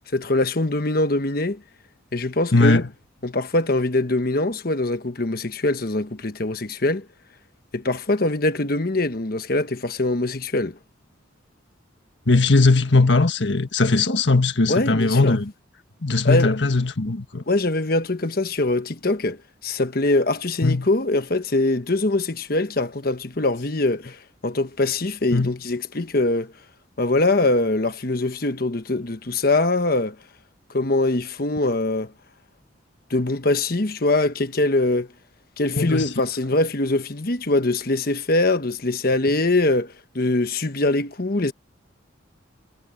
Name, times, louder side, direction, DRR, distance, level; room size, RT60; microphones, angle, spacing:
voice 1, 0.1-1.6 2.1-2.8 3.2-7.0 7.7-10.8 14.7-15.4 16.2-16.5 17.5-26.5 27.0-30.2 30.7-32.1 33.1-35.1 35.6-41.5, left 2 dB, 50° left, 1.2 m, -23 dB
voice 2, 2.5-2.8 12.3-15.5 16.0-17.4 20.6-20.9 25.3-25.6 35.7-36.1, left 3 dB, 70° left, 1.6 m, -19 dB
head